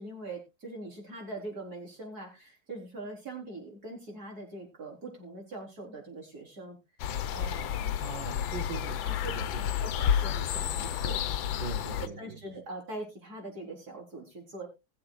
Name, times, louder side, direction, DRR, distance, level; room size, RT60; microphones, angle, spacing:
voice 1, 0.0-6.8 7.3-7.9 9.0-9.1 9.8-11.2 12.0-14.7, right 2 dB, 50° right, 4.6 m, -42 dB
sound 1, 7.0-12.1, left 9 dB, 85° left, 1.5 m, -31 dB
voice 2, 8.0-9.7 11.6-12.4, right 8 dB, 75° right, 1.7 m, -41 dB
20.0 x 7.6 x 2.4 m
omnidirectional pair, 2.1 m